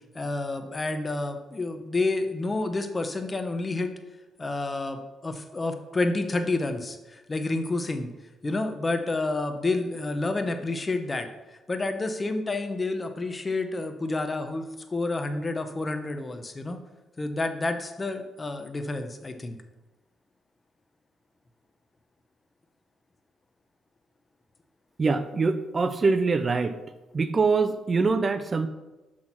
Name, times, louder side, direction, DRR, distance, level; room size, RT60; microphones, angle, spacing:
voice 1, 0.1-3.9 4.4-8.1 8.4-11.3 11.7-16.8 17.2-19.6, left 2 dB, 30° left, 7 dB, 1.0 m, -29 dB
voice 2, 25.0-26.7 27.1-28.7, right 4 dB, 35° right, 11 dB, 0.5 m, -24 dB
6.3 x 6.2 x 5.8 m, 1.1 s
cardioid pair, 75°, 0 cm